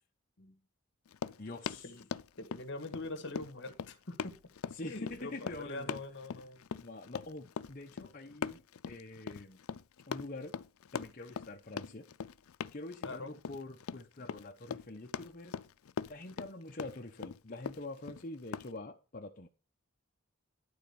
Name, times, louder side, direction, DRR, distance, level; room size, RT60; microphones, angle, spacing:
Run, 1.1-18.7, left 6 dB, 90° left, 0.5 m, -42 dB
voice 1, 1.4-2.0 4.7-6.0 6.8-9.6 10.1-10.5 10.9-12.1 12.7-15.6 16.1-19.5, left 2 dB, 40° left, 0.9 m, -45 dB
voice 2, 2.4-4.5 4.8-6.6 13.0-13.3, left 2 dB, 55° left, 1.6 m, -43 dB
11.5 x 4.3 x 6.9 m
head